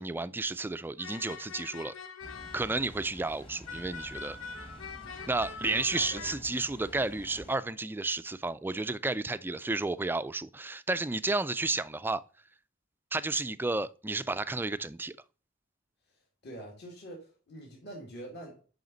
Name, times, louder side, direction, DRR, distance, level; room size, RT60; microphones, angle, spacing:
voice 1, 0.0-1.9 2.5-4.4 5.3-12.2 13.1-15.2, right 3 dB, 10° right, 0.3 m, -32 dB
sound 1, 1.0-3.0 3.7-6.4, left 5 dB, 90° left, 0.8 m, -43 dB
Water, 2.2-7.5, equal, 30° left, 1.3 m, -49 dB
voice 2, 5.7-6.3 16.4-18.6, right 1 dB, 60° left, 2.2 m, -45 dB
9.3 x 5.7 x 3.9 m
head